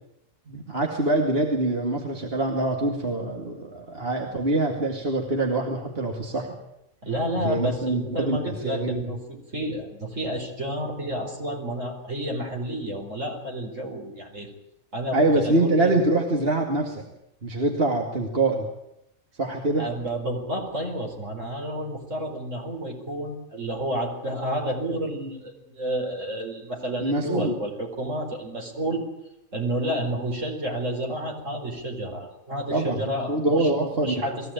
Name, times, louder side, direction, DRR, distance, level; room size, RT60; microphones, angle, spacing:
voice 1, 0.5-6.6 7.4-9.1 15.1-17.0 17.4-18.7 19.4-19.9 27.0-27.5 32.7-34.2, right 2 dB, 45° right, 1 dB, 2.5 m, -24 dB
voice 2, 7.0-14.5 14.9-15.9 19.7-29.0 29.5-34.5, right 1 dB, 70° right, 1 dB, 5.2 m, -30 dB
21.5 x 16.5 x 9.1 m, 0.85 s
omnidirectional pair, 1.4 m